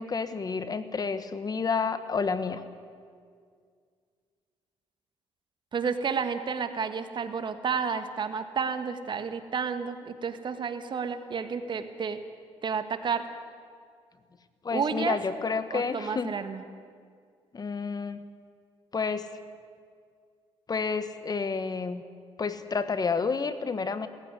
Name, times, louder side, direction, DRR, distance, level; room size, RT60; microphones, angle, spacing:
voice 1, 0.0-2.6 14.6-16.3 17.5-18.2 18.9-19.3 20.7-22.0 22.4-24.1, left 5 dB, 40° left, 12 dB, 1.3 m, -30 dB
voice 2, 5.7-12.2 12.6-13.2 14.7-15.2 15.7-16.6, right 6 dB, 50° right, 9 dB, 1.6 m, -31 dB
17.5 x 15.0 x 9.8 m, 2.1 s
supercardioid pair, 75°, 11 cm